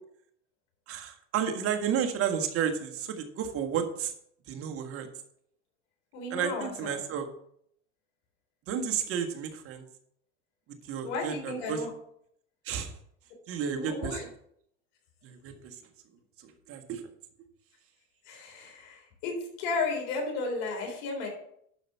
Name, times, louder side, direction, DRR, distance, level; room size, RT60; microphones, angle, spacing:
voice 1, 0.9-4.1 4.5-5.1 6.3-7.3 8.7-9.9 10.8-11.9 12.7-12.9 13.5-14.3 15.2-15.8 16.4-17.0, right 8 dB, 40° right, 5 dB, 1.6 m, -32 dB
voice 2, 6.1-7.0 11.0-11.9 13.8-14.2 18.3-21.3, left 3 dB, 60° left, 1 dB, 3.8 m, -34 dB
12.0 x 5.0 x 5.6 m, 0.69 s
supercardioid pair, 125°, 35 cm